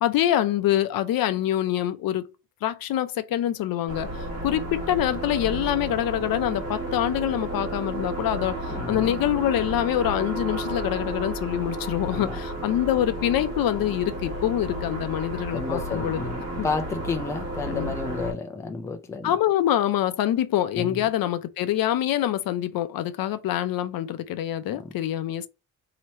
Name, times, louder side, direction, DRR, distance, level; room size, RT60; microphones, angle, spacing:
voice 1, 0.0-2.3 2.6-4.2 4.4-16.2 16.6-16.7 17.7-17.9 19.2-25.5, left 12 dB, 70° left, 0.5 m, -25 dB
sound 1, 3.9-18.3, right 1 dB, 45° right, 1.3 m, -32 dB
voice 2, 8.7-9.2 12.0-12.4 15.5-19.4 20.8-21.1 24.7-24.9, left 3 dB, 10° left, 0.4 m, -32 dB
3.0 x 2.9 x 4.3 m
cardioid pair, 170°, 37 cm